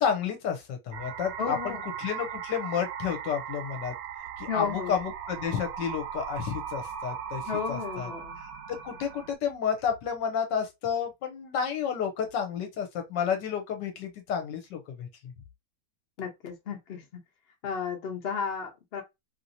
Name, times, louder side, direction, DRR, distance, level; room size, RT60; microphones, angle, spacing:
voice 1, 0.0-3.9 4.4-7.4 7.7-8.1 8.7-15.3, left 7 dB, 75° left, 1.3 m, -31 dB
sound 1, 0.9-9.3, right 8 dB, 70° right, 1.2 m, -38 dB
voice 2, 1.4-1.8 4.5-5.0 7.5-8.3 16.2-17.0 17.6-19.0, left 6 dB, 50° left, 0.7 m, -33 dB
3.0 x 2.8 x 2.6 m
omnidirectional pair, 2.0 m